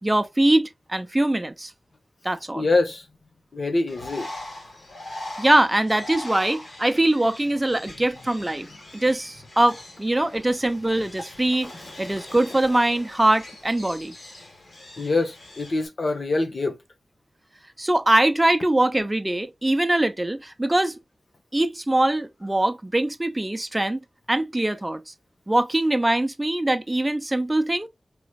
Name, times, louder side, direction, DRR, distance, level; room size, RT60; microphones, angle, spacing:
voice 1, 0.0-1.7 2.2-2.7 5.4-8.7 8.9-11.7 12.0-14.1 17.8-21.0 21.5-24.0 24.3-25.1 25.5-27.9, right 1 dB, 20° right, 0.7 m, -22 dB
voice 2, 2.5-3.0 3.5-4.3 15.0-16.8, left 2 dB, 60° left, 1.1 m, -24 dB
Bird, 3.9-15.9, left 2 dB, 85° left, 2.5 m, -41 dB
5.0 x 3.2 x 2.4 m
wide cardioid pair, 75°, 0 cm